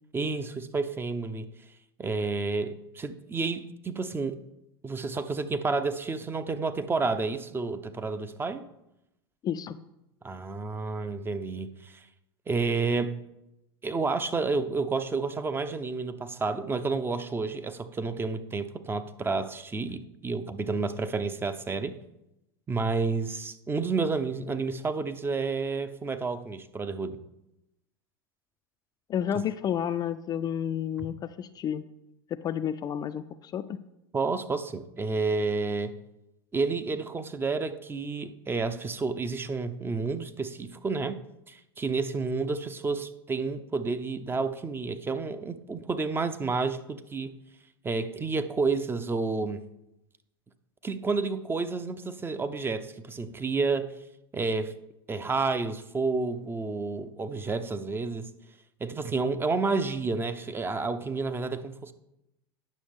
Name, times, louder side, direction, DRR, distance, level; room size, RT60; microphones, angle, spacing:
voice 1, 0.1-1.5 2.0-4.4 4.8-8.6 10.2-12.0 12.5-13.2 13.8-22.0 22.7-27.2 34.1-35.9 36.5-41.2 41.5-47.3 47.8-49.6 50.8-54.0 54.3-54.8 55.1-58.3 58.8-61.9, right 4 dB, 15° right, 0.6 m, -30 dB
voice 2, 9.4-9.8 29.1-31.8 32.3-33.8, left 9 dB, 30° left, 0.4 m, -31 dB
9.4 x 6.3 x 3.6 m
hypercardioid pair, 90°, 13 cm